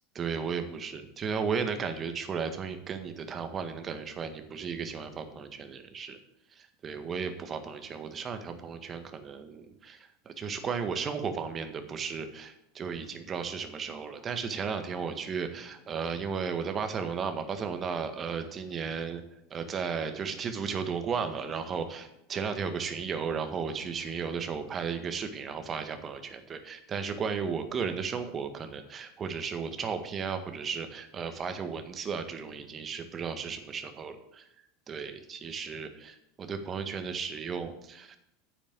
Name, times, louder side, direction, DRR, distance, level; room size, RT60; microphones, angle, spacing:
voice 1, 0.2-6.2 6.6-19.2 19.5-34.5 34.9-35.9 36.4-38.2, right 6 dB, 30° right, 7 dB, 1.7 m, -34 dB
10.5 x 7.1 x 8.4 m, 0.82 s
figure-of-eight pair, 80°, 0 cm